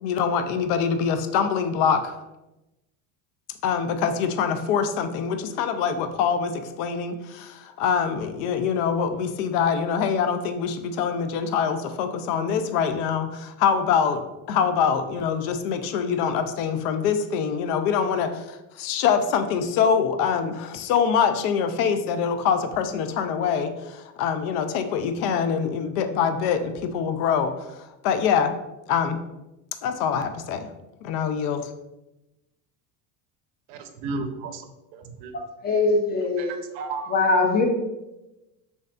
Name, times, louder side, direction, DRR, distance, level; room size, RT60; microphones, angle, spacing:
voice 1, 0.0-2.2 3.6-28.6 28.9-29.2 29.8-30.7 31.0-31.7, left 7 dB, 65° left, 9 dB, 0.5 m, -24 dB
voice 2, 33.7-34.6 34.9-35.3 36.4-37.1, right 3 dB, 60° right, 7 dB, 0.6 m, -33 dB
voice 3, 35.6-36.5 37.1-37.6, left 3 dB, 20° left, 2 dB, 0.5 m, -21 dB
3.2 x 2.7 x 2.4 m, 0.98 s
hypercardioid pair, 85°, 49 cm